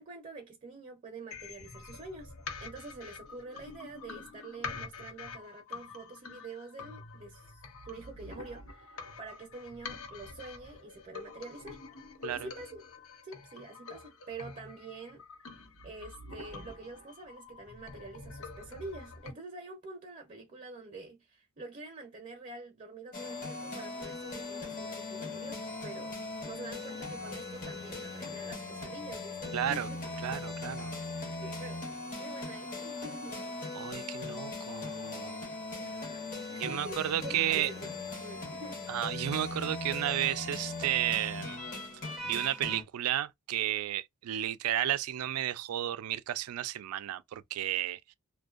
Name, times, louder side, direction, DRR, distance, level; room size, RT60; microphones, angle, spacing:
voice 1, 0.0-2.3 2.6-11.8 12.3-12.8 13.2-15.2 15.5-26.2 26.4-30.0 31.4-31.8 32.2-33.4 35.8-37.8 38.2-38.8, right 2 dB, 35° right, 0.6 m, -46 dB
sound 1, 1.3-19.3, left 4 dB, 70° left, 0.7 m, -46 dB
sound 2, 23.1-42.8, left 3 dB, 40° left, 0.8 m, -39 dB
voice 2, 29.5-29.9 30.2-30.9 33.7-35.4 36.6-37.7 38.9-41.6 42.2-48.1, right 12 dB, 85° right, 0.3 m, -32 dB
2.6 x 2.2 x 2.3 m
head